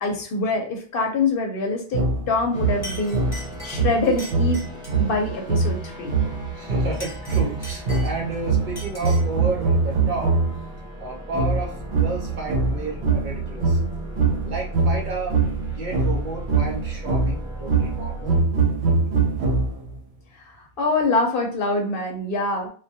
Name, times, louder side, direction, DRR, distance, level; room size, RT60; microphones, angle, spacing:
voice 1, 0.0-3.2 3.6-4.6 5.0-6.1 20.3-22.7, left 3 dB, 65° left, 2 dB, 0.7 m, -24 dB
sound 1, 1.9-10.7 11.3-20.0, right 4 dB, 90° right, 0.8 m, -23 dB
Chink clink, 2.3-2.5 2.8-5.1 6.8-8.4 8.8-9.4, left 1 dB, 25° left, 0.9 m, -40 dB
sound 2, 2.5-18.4, equal, 5° right, 0.7 m, -38 dB
voice 2, 6.5-10.3 11.0-11.7 12.0-13.8 14.4-15.4 15.8-18.4, right 3 dB, 55° right, -1 dB, 0.7 m, -31 dB
2.2 x 2.1 x 2.7 m, 0.42 s
omnidirectional pair, 1.1 m